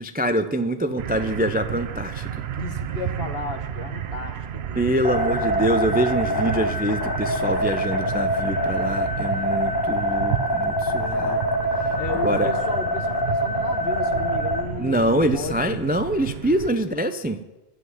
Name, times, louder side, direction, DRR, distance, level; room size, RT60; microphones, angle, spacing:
voice 1, 0.0-2.4 4.8-11.4 12.2-12.5 14.8-17.4, right 1 dB, 15° right, 9 dB, 0.4 m, -25 dB
sound 1, 1.0-16.7, right 9 dB, 70° right, 0.9 m, -32 dB
voice 2, 2.6-5.0 12.0-15.8, left 5 dB, 60° left, 7 dB, 1.4 m, -34 dB
sound 2, 5.0-14.6, equal, 20° left, 0.9 m, -25 dB
11.5 x 7.7 x 9.4 m, 1.1 s
omnidirectional pair, 1.2 m